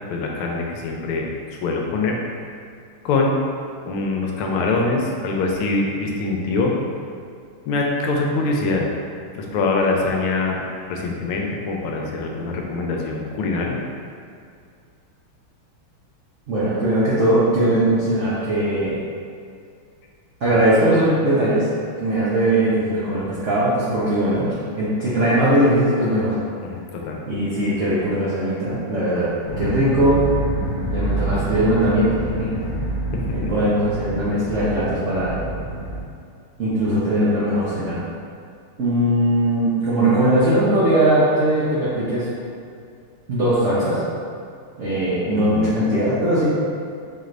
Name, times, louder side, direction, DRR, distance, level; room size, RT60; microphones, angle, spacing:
voice 1, 0.1-1.3 1.6-2.2 3.0-3.3 3.9-6.7 7.6-8.9 9.3-10.6 10.9-13.8 26.6-27.2 33.1-33.5 45.3-45.8, left 3 dB, 85° left, 0 dB, 1.5 m, -23 dB
voice 2, 16.5-18.9 20.4-21.7 22.0-24.5 24.8-26.4 27.3-30.3 30.9-32.5 33.3-35.3 36.6-38.0 38.8-42.3 43.3-44.0 44.8-46.5, right 1 dB, 75° right, -10 dB, 0.7 m, -20 dB
sound 1, 29.4-36.0, right 1 dB, 65° left, 1.4 m, -27 dB
4.7 x 3.1 x 2.5 m, 2.3 s
omnidirectional pair, 2.3 m